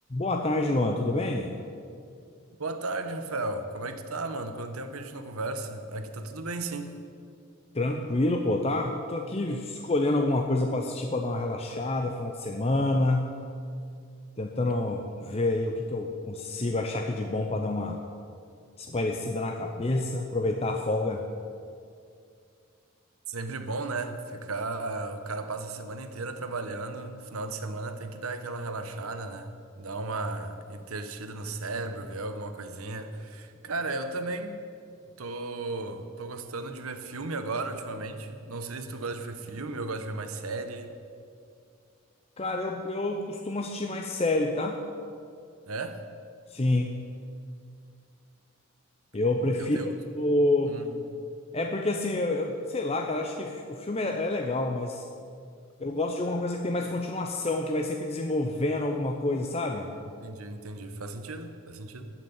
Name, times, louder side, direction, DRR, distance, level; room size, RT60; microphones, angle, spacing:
voice 1, 0.1-1.5 7.7-13.3 14.4-18.0 18.8-21.2 42.4-44.8 46.5-46.9 49.1-49.8 50.1-50.8 51.5-55.0 55.8-59.9, left 2 dB, 30° left, 2 dB, 0.6 m, -28 dB
voice 2, 2.6-7.0 23.3-34.5 35.2-40.9 45.7-46.0 49.6-49.9 50.7-50.8 60.2-62.1, right 3 dB, 85° right, 8 dB, 1.1 m, -35 dB
14.0 x 5.9 x 9.4 m, 2.3 s
head